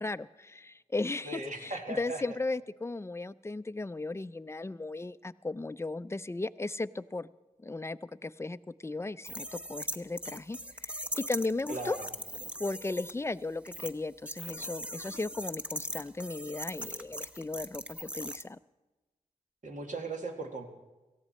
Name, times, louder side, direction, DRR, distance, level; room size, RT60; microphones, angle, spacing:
voice 1, 0.0-7.3 7.6-12.0 12.6-18.6, left 2 dB, 20° left, 15 dB, 0.5 m, -36 dB
voice 2, 1.2-2.2 11.7-12.1 19.6-20.7, right 2 dB, 60° right, 3 dB, 2.1 m, -38 dB
sound 1, 9.2-13.1 13.7-13.9 14.3-18.4, equal, 10° right, 0.8 m, -40 dB
18.0 x 14.0 x 4.3 m, 1.1 s
cardioid pair, 45°, 14 cm